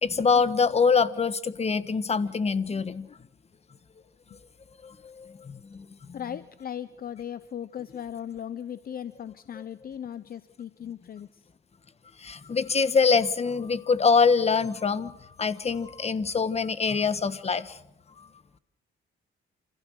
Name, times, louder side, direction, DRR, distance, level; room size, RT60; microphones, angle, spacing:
voice 1, 0.0-3.1 4.8-5.8 12.2-15.1 15.4-17.8, left 5 dB, 30° left, 14 dB, 1.4 m, -24 dB
voice 2, 6.1-11.4, left 9 dB, 50° left, 15 dB, 0.8 m, -37 dB
28.0 x 15.5 x 6.5 m, 0.82 s
cardioid pair, 90°, 20 cm